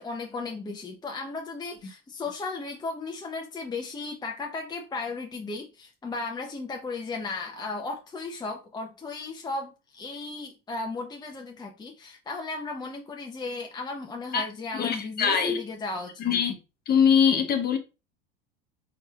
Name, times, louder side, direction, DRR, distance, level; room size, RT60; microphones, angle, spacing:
voice 1, 0.0-16.2, left 3 dB, 15° left, 0.8 m, -35 dB
voice 2, 14.7-15.6 16.2-16.6 16.9-17.8, left 7 dB, 30° left, 1.2 m, -22 dB
4.3 x 4.1 x 2.4 m
hypercardioid pair, 85°, 30 cm